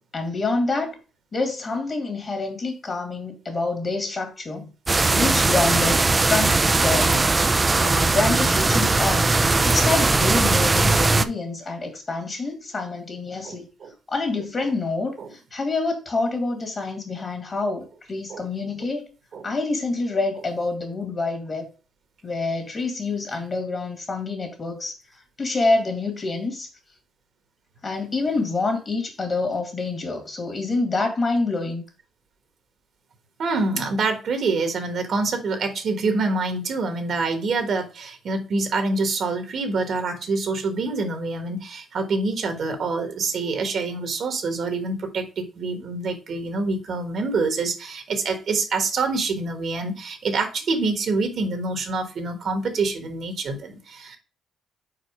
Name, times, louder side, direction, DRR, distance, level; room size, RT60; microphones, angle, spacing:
voice 1, 0.1-1.0 1.3-4.7 5.1-7.4 7.7-13.7 14.1-19.1 19.4-21.7 22.2-25.0 25.4-26.7 27.8-31.8, left 3 dB, 35° left, 5 dB, 2.2 m, -27 dB
sound 1, 4.9-11.3, right 3 dB, 25° right, 0.5 m, -19 dB
voice 2, 13.4-13.9 15.2-15.3 18.3-18.4 19.3-19.4 33.4-54.2, right 3 dB, 60° right, 7 dB, 1.3 m, -26 dB
5.0 x 4.4 x 4.8 m, 0.34 s
cardioid pair, 90°, 0 cm